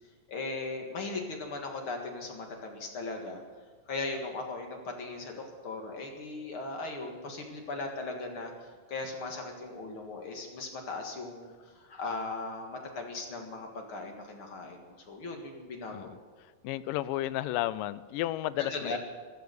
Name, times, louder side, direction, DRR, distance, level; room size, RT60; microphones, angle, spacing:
voice 1, 0.3-3.4 3.9-8.5 8.9-11.5 11.9-16.1 18.6-19.0, left 3 dB, 45° left, 2.2 m, -38 dB
voice 2, 15.9-19.0, left 14 dB, 80° left, 2.2 m, -33 dB
14.5 x 13.0 x 6.8 m
omnidirectional pair, 3.9 m